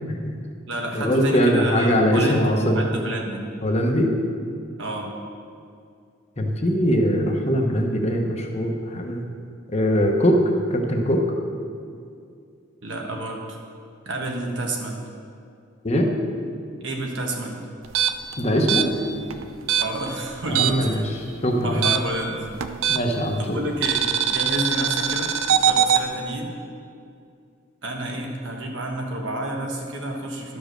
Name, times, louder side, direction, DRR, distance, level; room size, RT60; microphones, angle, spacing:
voice 1, 0.1-0.4 0.9-2.9 3.6-4.1 6.4-9.2 9.7-10.4 10.7-11.2 15.8-16.1 18.4-18.9 20.4-21.9 22.9-23.6, equal, 30° left, 2 dB, 0.9 m, -21 dB
voice 2, 0.7-3.5 4.8-5.1 12.8-13.6 14.0-15.0 16.8-17.6 19.8-20.8 21.5-22.5 23.4-26.5 27.8-30.6, right 1 dB, 60° right, 1 dB, 1.3 m, -29 dB
sound 1, 17.8-21.0 21.2-23.3 23.8-26.0, right 8 dB, 80° right, 0.5 m, -22 dB
12.0 x 5.2 x 6.3 m, 2.4 s
head